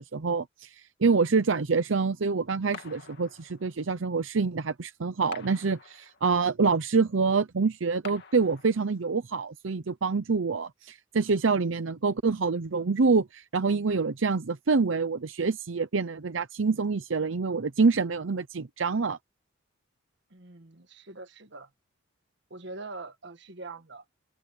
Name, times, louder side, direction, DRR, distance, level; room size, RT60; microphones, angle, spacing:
voice 1, 0.0-19.2, right 4 dB, 90° right, 0.7 m, -26 dB
Rapid Fire Sub Machine Gun distant, 2.7-3.9 5.3-6.4 8.0-9.1, left 5 dB, 60° left, 2.4 m, -47 dB
voice 2, 20.3-21.7 22.5-24.0, right 3 dB, 65° right, 1.6 m, -43 dB
open air
head